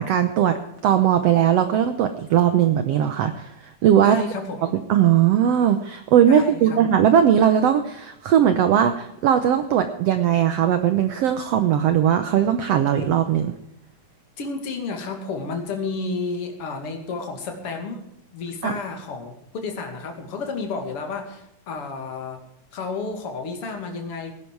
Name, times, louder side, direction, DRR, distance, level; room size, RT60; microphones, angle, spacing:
voice 1, 0.0-4.2 4.9-13.5 18.6-18.7, right 9 dB, 80° right, 9 dB, 1.4 m, -19 dB
voice 2, 4.0-4.7 6.3-6.8 14.4-18.1 18.3-22.4 22.7-24.3, left 4 dB, 45° left, 3 dB, 3.0 m, -31 dB
18.5 x 11.0 x 4.7 m, 0.81 s
omnidirectional pair, 3.9 m